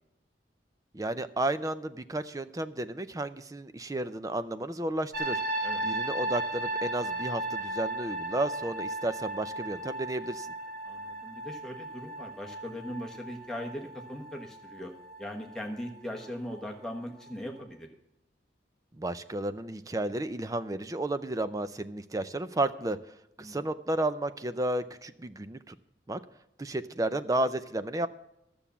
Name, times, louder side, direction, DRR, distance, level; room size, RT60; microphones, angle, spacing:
voice 1, 0.9-10.5 18.9-23.0 23.4-25.8 26.1-26.2 26.6-28.1, right 1 dB, 20° right, 12 dB, 0.5 m, -32 dB
sound 1, 5.1-16.9 17.1-17.6, right 1 dB, 55° right, 1.8 m, -36 dB
voice 2, 10.8-14.9 15.2-17.9 23.4-23.6, equal, 5° left, 1 dB, 1.3 m, -39 dB
12.0 x 7.0 x 7.2 m, 0.84 s
head